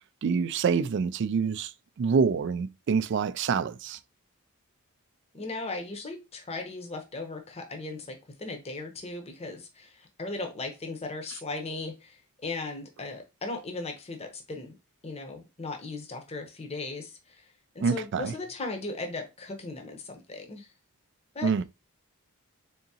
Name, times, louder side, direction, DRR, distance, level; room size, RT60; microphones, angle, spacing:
voice 1, 0.2-1.7 2.0-4.0 17.8-18.3 21.4-21.6, right 5 dB, 55° right, 0.3 m, -26 dB
voice 2, 5.3-14.7 15.0-20.7 21.3-21.6, left 3 dB, 25° left, 0.7 m, -37 dB
3.9 x 3.5 x 2.7 m
head